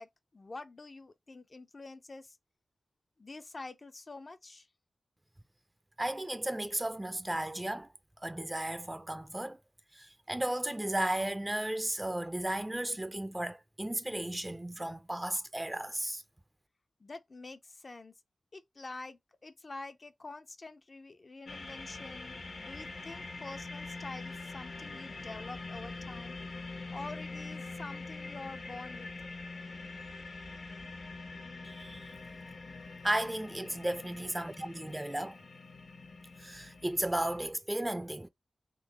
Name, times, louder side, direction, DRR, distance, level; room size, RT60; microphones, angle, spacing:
voice 1, 0.0-2.4 3.2-4.7 17.0-18.1 18.5-26.4 26.9-29.1, left 3 dB, 40° left, 0.6 m, -47 dB
voice 2, 6.0-7.9 8.2-9.6 9.9-16.2 31.6-32.2 33.0-35.4 36.4-38.3, right 1 dB, 15° right, 0.5 m, -34 dB
sound 1, 21.5-37.5, left 3 dB, 70° left, 1.1 m, -44 dB
3.8 x 3.1 x 3.0 m
wide cardioid pair, 90°, 0 cm